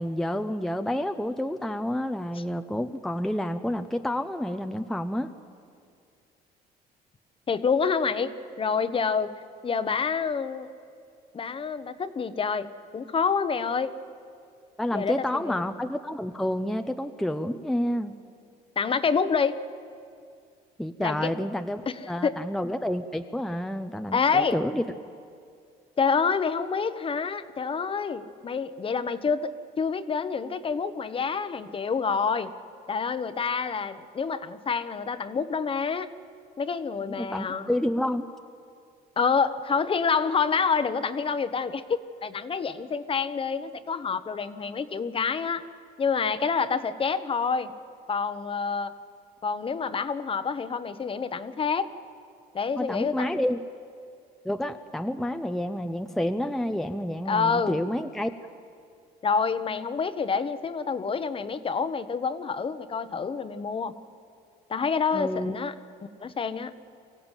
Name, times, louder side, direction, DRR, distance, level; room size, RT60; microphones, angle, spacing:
voice 1, 0.0-5.3 14.8-18.1 20.8-24.8 37.0-38.3 52.8-53.6 54.4-58.3 65.1-65.6, left 1 dB, ahead, 7 dB, 0.7 m, -29 dB
voice 2, 7.5-8.3 8.6-10.7 11.3-13.9 14.9-15.7 18.8-19.6 21.0-21.3 21.9-22.4 24.1-24.6 26.0-32.5 32.9-36.1 36.6-37.7 39.2-41.8 42.2-45.6 46.0-47.7 48.1-48.9 49.4-51.9 52.5-53.4 57.3-57.8 59.2-63.9 64.7-65.7 66.2-66.7, left 5 dB, 30° left, 12 dB, 1.0 m, -27 dB
24.0 x 15.5 x 9.1 m, 2.3 s
cardioid pair, 110°, 17 cm